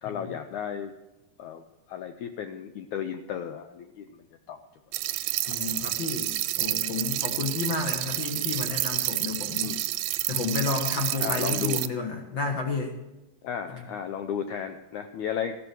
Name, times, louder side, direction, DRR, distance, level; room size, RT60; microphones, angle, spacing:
voice 1, 0.0-0.9 1.4-1.6 1.9-4.6 5.6-5.7 9.6-9.8 11.2-11.8 13.4-15.6, left 8 dB, 80° left, 7 dB, 1.7 m, -34 dB
sound 1, 4.9-11.9, right 16 dB, 80° right, 2.2 m, -29 dB
voice 2, 5.5-9.8 10.3-12.9 13.7-13.8, left 4 dB, 55° left, 3 dB, 1.4 m, -31 dB
15.0 x 12.5 x 4.6 m, 1.0 s
omnidirectional pair, 4.2 m